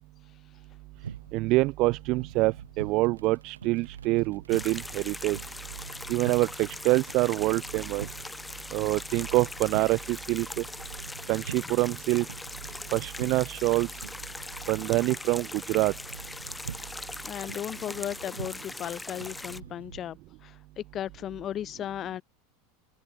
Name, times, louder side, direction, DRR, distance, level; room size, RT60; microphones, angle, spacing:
sound 1, 0.9-20.0, right 7 dB, 80° right, 5.1 m, -45 dB
voice 1, 1.3-5.4 6.1-8.1 8.7-10.6 11.3-12.3 12.9-13.9 14.7-15.9, right 21 dB, 50° right, 2.0 m, -26 dB
sound 2, 4.5-19.6, left 2 dB, 10° left, 3.3 m, -41 dB
voice 2, 17.2-22.2, left 11 dB, 35° left, 6.4 m, -36 dB
hypercardioid pair, 85°, 0 cm